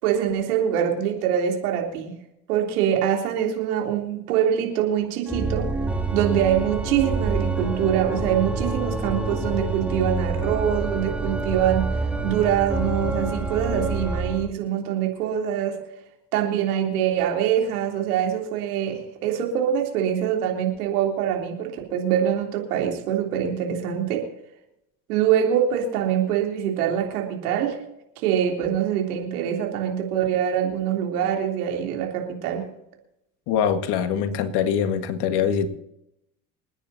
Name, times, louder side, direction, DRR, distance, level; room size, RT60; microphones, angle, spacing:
voice 1, 0.0-2.1 2.5-5.7 6.1-12.0 12.2-15.8 16.3-24.3 25.1-27.8 28.2-32.6, right 9 dB, 80° right, 1 dB, 3.5 m, -24 dB
Organ, 5.3-14.5, right 3 dB, 5° right, 2.7 m, -27 dB
voice 2, 33.5-35.7, left 8 dB, 65° left, 9 dB, 1.9 m, -23 dB
28.0 x 10.0 x 2.8 m, 0.83 s
hypercardioid pair, 65°, 44 cm